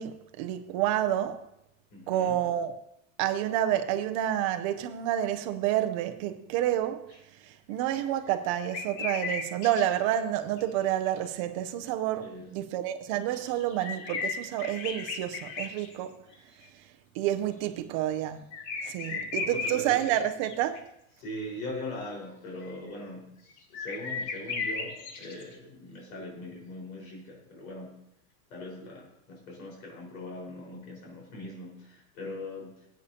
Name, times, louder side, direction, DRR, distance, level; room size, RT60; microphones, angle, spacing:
voice 1, 0.0-1.4 2.1-2.8 3.2-16.2 17.1-18.4 18.8-20.8, right 12 dB, 25° right, 0.4 m, -29 dB
voice 2, 1.9-2.4 12.2-12.7 13.4-13.5 19.1-20.0 21.2-28.0 28.5-32.9, left 1 dB, 90° left, 4.6 m, -41 dB
sound 1, 7.1-7.2 8.7-9.8 10.1-10.2 10.6-10.7 11.1-11.2 13.3-16.0 16.3-16.4 18.5-20.8 22.6-22.8 23.6-25.5, left 4 dB, 45° left, 1.4 m, -35 dB
19.0 x 8.4 x 2.8 m
supercardioid pair, 175°, 41 cm